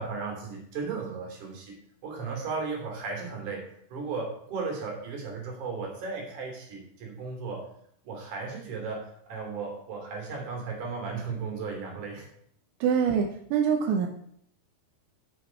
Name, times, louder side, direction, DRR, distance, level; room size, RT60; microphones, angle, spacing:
voice 1, 0.0-1.8 2.0-3.6 3.9-7.6 8.0-12.3, right 4 dB, 50° right, 0 dB, 4.0 m, -35 dB
voice 2, 12.8-14.1, right 7 dB, 85° right, 3 dB, 3.2 m, -25 dB
10.0 x 7.7 x 4.4 m, 0.66 s
omnidirectional pair, 5.1 m